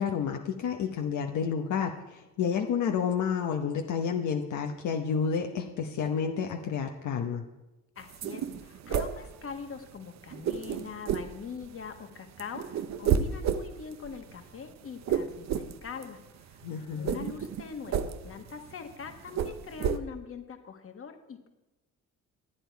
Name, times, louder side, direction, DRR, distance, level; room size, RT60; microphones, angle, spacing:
voice 1, 0.0-7.4 16.6-17.3, left 7 dB, 75° left, 3 dB, 1.0 m, -30 dB
voice 2, 7.9-16.6 16.9-21.5, left 6 dB, 45° left, 6 dB, 1.4 m, -43 dB
sound 1, 8.0-9.9 10.2-12.0 12.3-20.0, right 8 dB, 65° right, 0.8 m, -31 dB
12.5 x 8.9 x 4.6 m, 1.0 s
cardioid pair, 90°, 30 cm